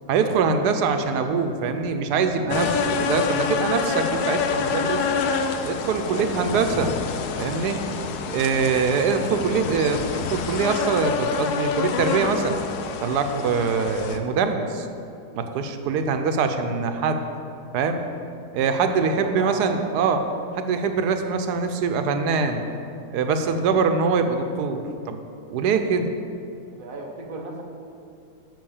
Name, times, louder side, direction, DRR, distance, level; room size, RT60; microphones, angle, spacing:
voice 1, 0.1-5.1 5.6-6.9 7.4-7.8 8.3-12.6 13.0-14.9 15.3-17.2 17.7-18.0 18.5-20.2 20.6-22.6 23.1-25.2 25.5-26.1, right 5 dB, 90° right, 7 dB, 1.2 m, -23 dB
sound 1, 2.5-14.2, left 5 dB, 85° left, 1.2 m, -27 dB
voice 2, 5.8-6.4 18.6-19.8 26.7-27.6, right 3 dB, 40° right, 1 dB, 1.0 m, -36 dB
7.7 x 5.9 x 7.1 m, 2.5 s
omnidirectional pair, 1.7 m